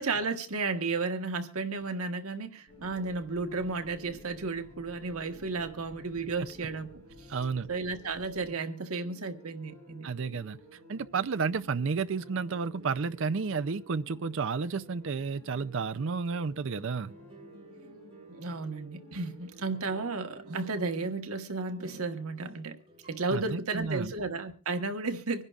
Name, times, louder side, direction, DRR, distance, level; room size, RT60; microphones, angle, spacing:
voice 1, 0.0-7.3 7.7-10.1 18.3-22.8 23.1-25.4, right 3 dB, 85° right, 1.3 m, -33 dB
sound 1, 2.7-20.2, left 2 dB, 15° left, 7.7 m, -53 dB
sound 2, 2.7-8.5, equal, 45° right, 3.5 m, -56 dB
voice 2, 7.3-7.7 10.0-10.6 10.9-17.1 23.3-24.1, right 5 dB, 60° right, 0.5 m, -31 dB
sound 3, 12.1-23.4, right 2 dB, 25° right, 3.6 m, -56 dB
25.5 x 11.0 x 2.4 m
head